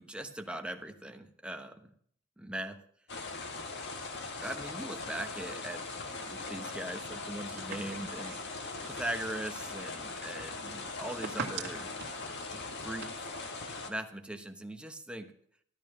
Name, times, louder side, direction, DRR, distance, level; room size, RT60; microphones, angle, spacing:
voice 1, 0.0-1.9 2.4-2.8 4.4-5.9 6.3-8.5 8.9-12.0 12.5-13.3 13.8-15.3, right 1 dB, 5° right, 5 dB, 1.1 m, -40 dB
sound 1, 3.1-13.9, left 3 dB, 55° left, 1.9 m, -40 dB
sound 2, 6.4-13.1, right 4 dB, 55° right, 2.2 m, -46 dB
15.0 x 13.0 x 6.2 m, 0.62 s
head